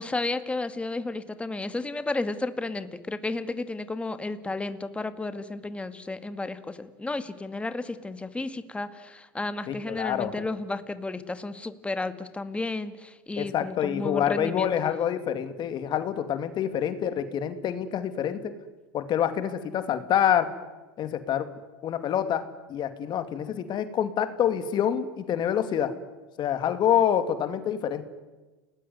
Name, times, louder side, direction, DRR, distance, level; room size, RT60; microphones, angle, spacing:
voice 1, 0.0-14.7, left 2 dB, 10° left, 11 dB, 2.0 m, -32 dB
voice 2, 9.7-10.3 13.4-18.5 18.9-20.5 21.0-21.5 21.8-25.9 26.4-28.0, left 9 dB, 45° left, 10 dB, 2.6 m, -27 dB
30.0 x 20.0 x 9.5 m, 1.2 s
hypercardioid pair, 105°, 11 cm